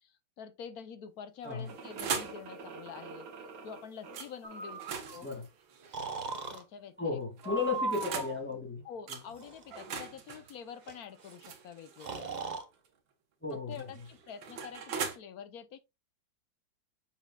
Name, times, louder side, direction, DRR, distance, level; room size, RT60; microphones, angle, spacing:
voice 1, 0.0-3.3 3.6-5.3 6.5-7.6 8.8-12.3 13.5-15.8, left 7 dB, 65° left, 1.1 m, -47 dB
sound 1, 1.4-2.4 4.1-4.3 4.7-6.6 7.4-8.4 9.1-9.2 9.7-12.4 13.5-15.2, right 6 dB, 85° right, 1.9 m, -40 dB
sound 2, 1.7-5.0, right 4 dB, 65° right, 1.5 m, -48 dB
Breathing, 4.4-5.2 5.9-6.6 7.4-8.4 9.3-9.7 10.9-11.0 11.2-11.3 12.0-12.6, right 3 dB, 35° right, 0.7 m, -38 dB
voice 2, 7.0-8.8 9.1-9.2 13.4-13.9, left 4 dB, 5° left, 2.2 m, -34 dB
7.2 x 6.0 x 2.3 m
omnidirectional pair, 2.0 m